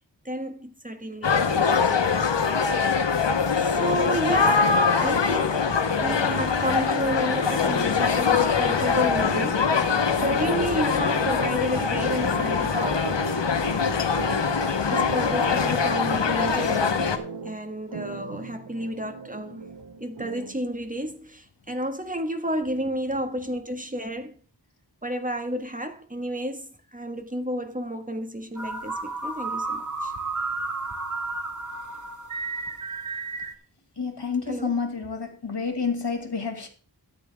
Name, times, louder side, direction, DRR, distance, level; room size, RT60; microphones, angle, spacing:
voice 1, 0.2-1.9 3.6-13.1 14.9-19.6 20.0-24.3 25.0-30.1 34.5-34.8, right 1 dB, 20° right, 1.7 m, -31 dB
sound 1, 1.2-17.2, left 5 dB, 90° left, 1.1 m, -23 dB
sound 2, 8.9-20.7, right 3 dB, 70° right, 1.1 m, -38 dB
sound 3, 28.6-33.6, right 3 dB, 45° right, 1.7 m, -32 dB
voice 2, 34.0-36.7, left 5 dB, 65° left, 2.0 m, -29 dB
13.5 x 9.0 x 3.5 m
wide cardioid pair, 55°, 42 cm